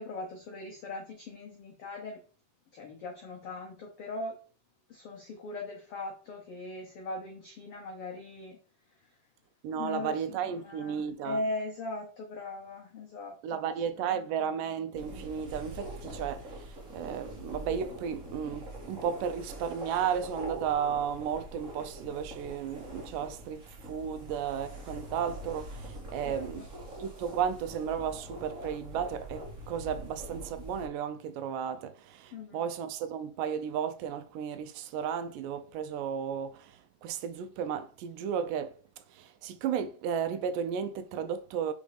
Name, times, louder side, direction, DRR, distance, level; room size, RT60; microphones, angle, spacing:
voice 1, 0.0-2.2 2.7-4.4 4.9-8.6 9.0-9.1 9.7-13.6 26.3-26.7 32.3-32.7, left 2 dB, 85° left, 1.2 m, -39 dB
voice 2, 9.6-11.4 13.4-26.7 27.0-41.7, right 8 dB, 80° right, 2.1 m, -34 dB
sound 1, 14.9-30.9, equal, 50° right, 1.0 m, -43 dB
5.1 x 4.1 x 5.0 m
omnidirectional pair, 3.9 m